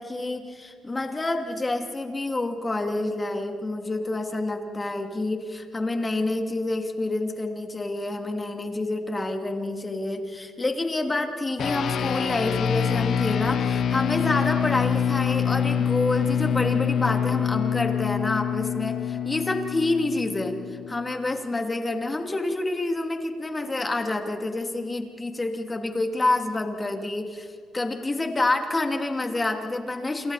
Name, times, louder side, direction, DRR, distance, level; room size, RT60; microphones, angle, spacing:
voice 1, 0.0-27.5 27.7-30.3, left 2 dB, 25° left, 4 dB, 2.7 m, -28 dB
sound 1, 11.6-21.2, left 8 dB, 70° left, 1.1 m, -26 dB
28.5 x 28.0 x 4.2 m, 2.2 s
cardioid pair, 100°, 0 cm